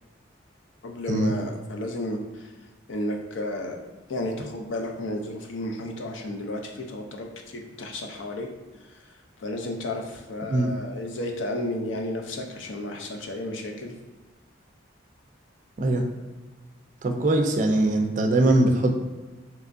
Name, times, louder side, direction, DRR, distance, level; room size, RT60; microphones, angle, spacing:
voice 1, 0.8-2.5 2.9-3.8 4.1-8.5 8.9-9.1 9.4-13.9, left 1 dB, 70° left, 2 dB, 0.5 m, -32 dB
voice 2, 15.8-16.1 17.0-19.0, right 1 dB, 40° right, 3 dB, 0.4 m, -21 dB
3.4 x 3.0 x 2.5 m, 1.3 s
head